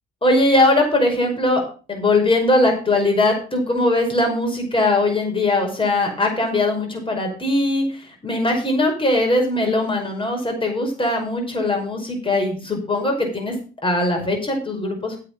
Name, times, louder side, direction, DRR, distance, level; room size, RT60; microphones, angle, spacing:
voice 1, 0.2-1.6 1.9-13.5 13.8-15.2, left 2 dB, 25° left, 2 dB, 5.6 m, -20 dB
8.8 x 8.6 x 5.7 m, 0.37 s
supercardioid pair, 75°, 21 cm